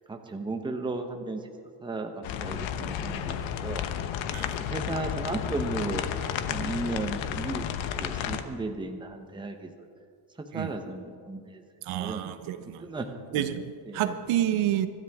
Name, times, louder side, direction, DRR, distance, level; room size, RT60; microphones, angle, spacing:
voice 1, 0.1-1.4 1.8-2.1 2.4-3.9 4.6-6.0 6.5-7.7 8.0-9.7 10.5-11.6 12.0-12.2 12.8-13.1 13.9-14.1, right 3 dB, 10° right, 4 dB, 1.0 m, -34 dB
sound 1, 2.2-8.4, left 9 dB, 70° left, 1.2 m, -32 dB
voice 2, 11.8-13.0 13.3-14.9, right 11 dB, 85° right, 10 dB, 1.2 m, -29 dB
25.5 x 13.0 x 3.6 m, 2.2 s
cardioid pair, 155°, 48 cm